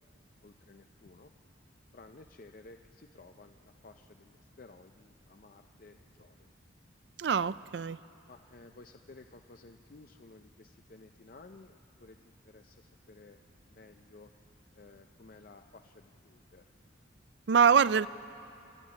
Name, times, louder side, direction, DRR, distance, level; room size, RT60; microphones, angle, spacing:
voice 1, 0.4-1.3 1.9-6.5 8.3-13.4 13.7-14.3 14.7-16.6, left 3 dB, 45° left, 6 dB, 0.5 m, -55 dB
voice 2, 7.2-8.0 17.5-18.1, right 6 dB, 60° right, 17 dB, 0.4 m, -24 dB
28.5 x 13.0 x 8.7 m, 2.9 s
head